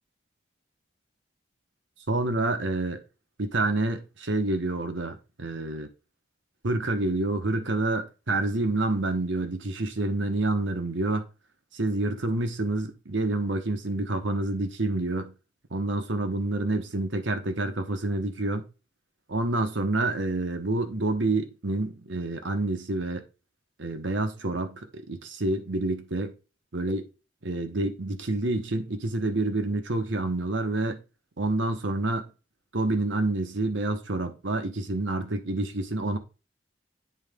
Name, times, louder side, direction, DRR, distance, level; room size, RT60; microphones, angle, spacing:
voice 1, 2.1-3.0 3.4-5.9 6.6-11.3 11.7-15.3 15.7-18.7 19.3-23.2 23.8-26.3 26.7-27.1 27.4-31.0 31.4-32.2 32.7-36.2, right 2 dB, 80° right, 1.2 m, -28 dB
9.0 x 3.9 x 3.7 m
head